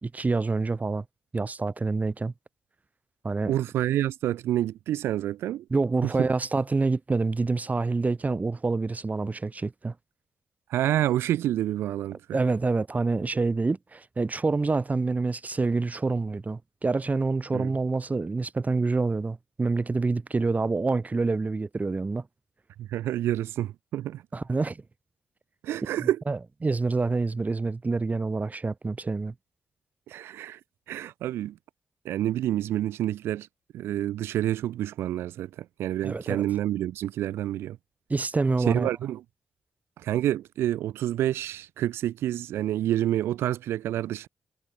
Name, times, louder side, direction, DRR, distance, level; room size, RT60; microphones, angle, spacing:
voice 1, 0.0-1.0 1.3-2.3 3.2-3.5 5.7-9.9 12.3-22.3 24.3-24.8 26.0-29.3 36.0-36.4 38.1-38.9, right 3 dB, 40° right, 5.1 m, -27 dB
voice 2, 3.5-5.6 10.7-12.4 17.5-17.7 22.8-24.2 25.6-26.2 30.1-30.6 30.9-31.6 32.0-33.5 33.7-37.8 38.6-39.2 40.0-44.3, right 12 dB, 85° right, 1.0 m, -28 dB
supercardioid pair, 40°, 4 cm